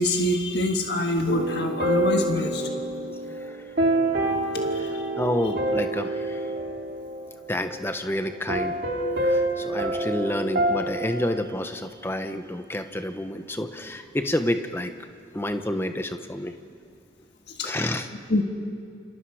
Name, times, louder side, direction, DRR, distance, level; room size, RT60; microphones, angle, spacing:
voice 1, 0.0-2.7 4.7-5.0 17.5-17.7 18.3-18.4, left 1 dB, 65° left, 3 dB, 1.6 m, -25 dB
sound 1, 1.3-7.9 8.5-11.1, right 1 dB, 60° right, 2.5 m, -27 dB
voice 2, 3.1-3.6 4.7-6.5 7.5-8.8 9.2-14.9 15.3-16.6 17.6-18.1, left 1 dB, 15° left, 7 dB, 1.0 m, -29 dB
29.0 x 25.5 x 4.9 m, 2.3 s
head